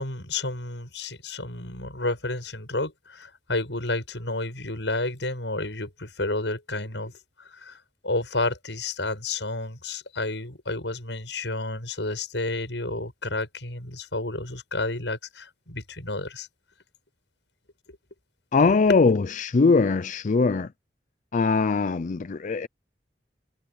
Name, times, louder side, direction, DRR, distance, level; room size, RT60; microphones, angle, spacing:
voice 1, 0.0-7.8 8.0-16.5, left 2 dB, 90° left, 7.9 m, -31 dB
voice 2, 18.5-20.7 21.3-22.7, left 4 dB, 45° left, 0.5 m, -21 dB
head